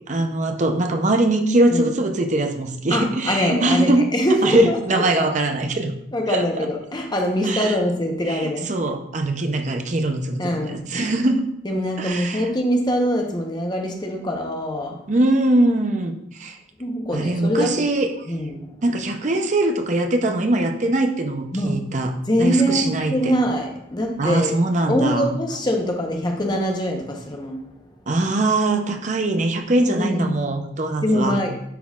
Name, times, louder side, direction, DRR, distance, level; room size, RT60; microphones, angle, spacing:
voice 1, 0.1-4.0 4.4-5.9 6.3-6.4 7.4-7.8 8.3-11.5 12.0-12.5 15.1-16.6 17.1-18.1 18.8-22.1 22.4-23.3 24.2-25.4 28.1-31.4, right 2 dB, 40° right, 5 dB, 0.6 m, -22 dB
voice 2, 2.9-5.3 6.1-8.7 10.4-10.9 11.6-15.0 16.8-17.8 18.3-18.7 21.5-21.9 22.3-24.6 24.9-27.7 29.9-30.3 31.0-31.5, equal, 20° left, 2 dB, 0.9 m, -23 dB
10.0 x 3.9 x 2.4 m, 0.75 s
head